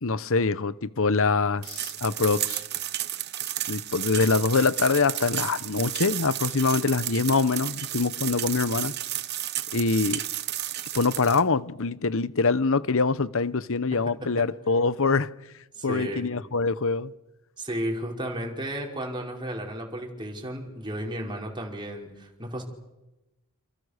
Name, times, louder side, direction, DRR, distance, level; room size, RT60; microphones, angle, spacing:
voice 1, 0.0-2.6 3.7-8.9 9.7-10.2 10.9-15.3 15.8-17.1, left 4 dB, 65° left, 1.0 m, -24 dB
sound 1, 1.6-11.4, right 13 dB, 50° right, 1.1 m, -32 dB
voice 2, 13.9-14.5 15.7-16.3 17.6-22.6, right 1 dB, 20° right, 5.1 m, -34 dB
28.5 x 28.5 x 6.7 m
head